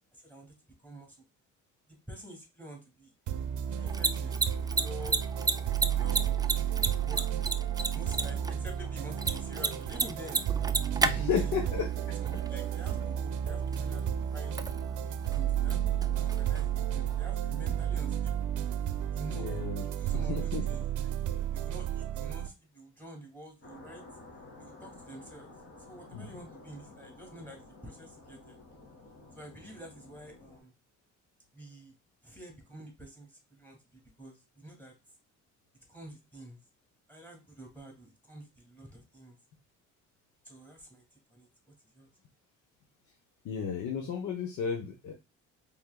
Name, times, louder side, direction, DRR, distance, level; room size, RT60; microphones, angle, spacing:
voice 1, 0.1-0.5 0.8-1.2 2.1-3.1 3.7-5.5 5.7-6.4 7.0-7.3 7.9-10.4 11.0-11.9 12.2-14.6 15.1-18.5 19.1-21.1 21.5-24.0 24.6-25.5 25.9-28.6 29.3-30.7 31.5-31.9 32.2-34.9 35.9-36.6 37.1-39.4 40.4-41.0 41.3-41.5 41.9-42.1, right 1 dB, 5° left, 2 dB, 2.3 m, -48 dB
sound 1, 3.3-22.5, right 9 dB, 75° right, 0.6 m, -32 dB
Mechanisms, 3.7-17.3, right 3 dB, 15° right, 0.4 m, -35 dB
voice 2, 11.0-11.9 19.3-19.8 20.1-20.7 26.1-26.4 43.4-45.1, left 7 dB, 75° left, 3 dB, 0.9 m, -33 dB
sound 2, 23.6-30.6, left 2 dB, 40° left, 1.9 m, -52 dB
4.6 x 3.6 x 2.2 m, 0.25 s
cardioid pair, 90°, 30 cm